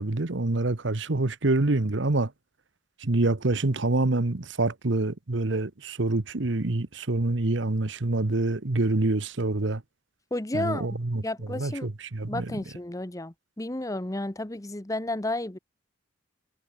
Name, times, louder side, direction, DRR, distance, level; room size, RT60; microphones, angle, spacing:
voice 1, 0.0-2.3 3.0-9.8 10.5-11.2 11.5-12.5, right 2 dB, 70° right, 1.1 m, -26 dB
voice 2, 10.3-10.9 11.2-11.9 12.3-15.6, left 1 dB, 15° left, 0.9 m, -32 dB
head